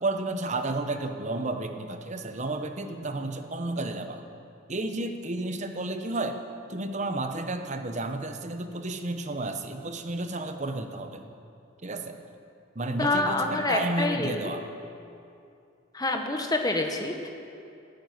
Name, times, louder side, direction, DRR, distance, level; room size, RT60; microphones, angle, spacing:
voice 1, 0.0-4.2 4.7-6.4 6.7-11.3 11.8-12.2 12.7-14.6, right 2 dB, 35° right, 7 dB, 0.9 m, -32 dB
voice 2, 13.0-14.5 15.9-17.3, left 2 dB, 20° left, 4 dB, 1.2 m, -27 dB
13.5 x 10.5 x 9.5 m, 2.6 s
head